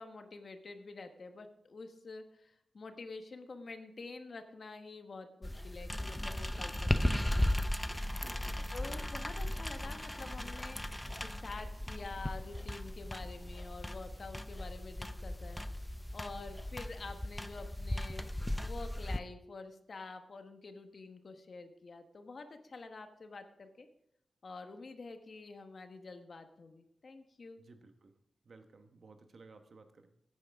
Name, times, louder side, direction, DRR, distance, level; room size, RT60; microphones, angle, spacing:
voice 1, 0.0-7.4 8.7-15.6 16.1-23.9 24.4-27.6, left 3 dB, 55° left, 6 dB, 1.1 m, -48 dB
sound 1, 5.4-19.2, left 1 dB, 10° left, 0.5 m, -37 dB
Gurgling / Liquid, 6.0-13.8, right 2 dB, 80° right, 4.7 m, -58 dB
voice 2, 8.1-8.7 27.6-28.1 28.5-30.1, right 3 dB, 60° right, 7 dB, 1.2 m, -57 dB
15.0 x 9.6 x 3.5 m, 0.75 s
wide cardioid pair, 95°, 0 cm